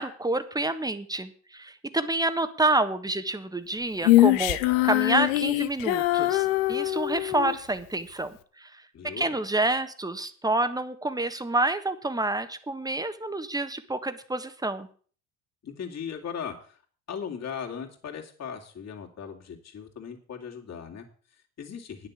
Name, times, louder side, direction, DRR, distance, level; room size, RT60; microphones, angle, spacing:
voice 1, 0.0-4.6 4.8-8.8 9.2-14.9, right 2 dB, 10° right, 10 dB, 1.4 m, -28 dB
Female singing, 4.0-7.6, left 18 dB, 75° left, 0.9 m, -23 dB
voice 2, 8.9-9.3 15.6-16.8 17.1-22.1, left 7 dB, 40° left, 0 dB, 3.0 m, -38 dB
9.9 x 6.7 x 8.4 m, 0.43 s
hypercardioid pair, 70°, 40 cm